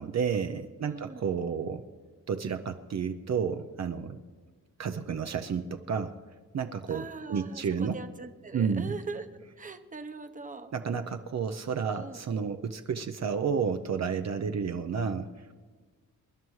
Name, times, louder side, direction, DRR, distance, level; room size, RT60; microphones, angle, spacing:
voice 1, 0.0-1.8 2.3-4.2 4.8-6.1 6.5-8.0 8.5-8.9 10.7-15.6, right 6 dB, 55° right, 6 dB, 0.6 m, -31 dB
voice 2, 0.8-1.3 6.9-10.7 11.9-12.2, right 4 dB, 25° right, 8 dB, 0.8 m, -41 dB
27.5 x 11.0 x 3.2 m, 1.5 s
wide cardioid pair, 100°, 33 cm